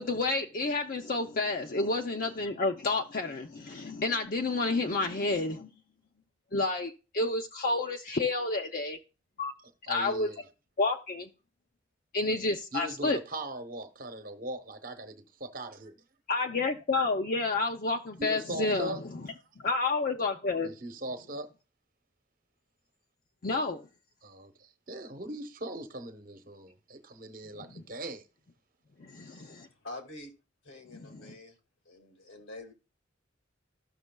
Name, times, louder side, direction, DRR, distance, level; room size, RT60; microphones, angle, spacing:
voice 1, 0.0-5.7 6.5-9.0 9.4-9.5 9.9-10.3 10.8-11.3 12.1-13.2 16.3-19.0 19.6-20.7 23.4-23.9 27.7-27.8 29.0-29.7 30.9-31.3, left 3 dB, 45° left, 0.6 m, -30 dB
voice 2, 9.6-10.4 12.7-16.0 18.2-19.0 20.6-21.5 24.2-28.3, right 1 dB, 45° right, 0.9 m, -40 dB
voice 3, 29.2-30.3 30.6-31.6 31.9-32.7, left 2 dB, 90° left, 2.0 m, -47 dB
14.0 x 6.2 x 2.2 m
head